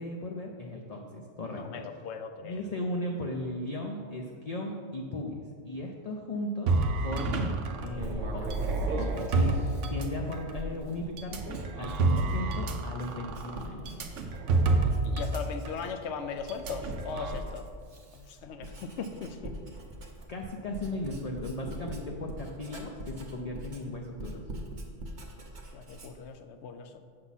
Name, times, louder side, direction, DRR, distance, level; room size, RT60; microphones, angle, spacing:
voice 1, 0.0-1.8 2.4-6.7 7.0-8.4 9.0-9.6 9.9-13.9 20.3-24.4, left 1 dB, 45° left, 0 dB, 0.5 m, -36 dB
voice 2, 1.5-2.6 15.0-17.7 18.1-19.5 25.7-27.0, left 5 dB, 70° left, 8 dB, 0.9 m, -39 dB
sound 1, 6.7-10.5 11.2-15.4 15.7-15.8 16.5-17.3, right 3 dB, 85° right, 1.0 m, -29 dB
Writing, 7.9-14.6 14.9-16.0 16.4-26.3, right 1 dB, 45° right, 0.9 m, -43 dB
7.6 x 5.9 x 4.1 m, 2.1 s
omnidirectional pair, 1.2 m